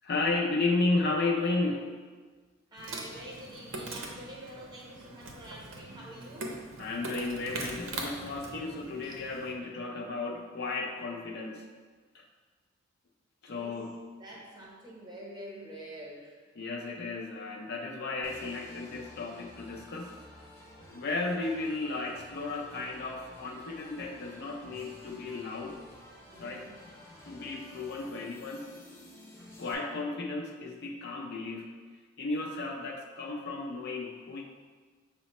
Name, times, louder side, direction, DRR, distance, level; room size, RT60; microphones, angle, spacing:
voice 1, 0.0-1.9 6.8-11.7 12.1-12.3 13.4-14.0 16.6-20.2 20.9-25.8 26.4-26.7 27.3-28.7 29.6-31.7 32.2-34.4, left 3 dB, 55° left, 1 dB, 0.5 m, -33 dB
voice 2, 2.7-6.6 13.5-13.8 14.2-16.4 26.3-26.8, equal, 20° right, -4 dB, 0.8 m, -46 dB
Insect, 2.8-9.5, right 2 dB, 75° right, 0.6 m, -42 dB
sound 1, 18.2-29.7, left 1 dB, 10° left, 0.7 m, -52 dB
5.7 x 2.0 x 4.1 m, 1.4 s
head